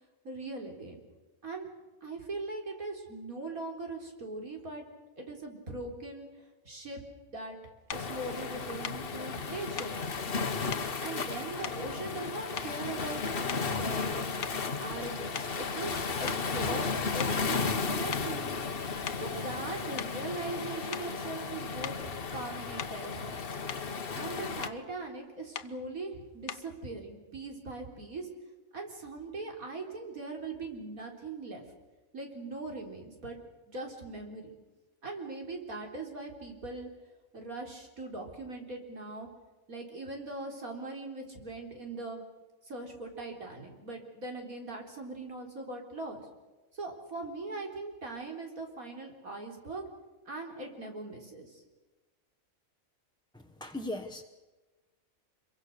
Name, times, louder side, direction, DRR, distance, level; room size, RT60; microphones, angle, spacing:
voice 1, 0.2-1.0 1.4-1.7 2.0-4.9 5.2-6.3 6.6-7.0 7.3-7.6 7.9-10.2 11.0-18.6 19.2-23.5 24.1-28.3 28.7-31.6 32.1-33.4 33.7-34.5 35.0-36.9 37.3-39.3 39.7-42.2 42.6-46.3 46.7-49.8 50.3-51.6, right 2 dB, 75° right, 2 dB, 4.5 m, -40 dB
sound 1, 7.9-8.1 8.8-9.1 9.8-10.0 10.7-10.9 11.6-12.2 12.6-12.9 13.4-13.8 14.4-16.0 16.3-16.5 17.2-17.5 18.1-18.3 18.9-19.3 20.0-20.2 20.9-21.2 21.8-22.1 22.8-23.1 23.5-23.9 24.6-24.8 25.5-25.8 26.5-26.8, left 8 dB, 80° left, 1.4 m, -41 dB
Waves surf, 7.9-24.7, left 5 dB, 45° left, 1.3 m, -34 dB
voice 2, 53.3-54.2, left 1 dB, 5° left, 4 dB, 1.0 m, -38 dB
26.5 x 23.0 x 6.7 m, 1.2 s
omnidirectional pair, 1.5 m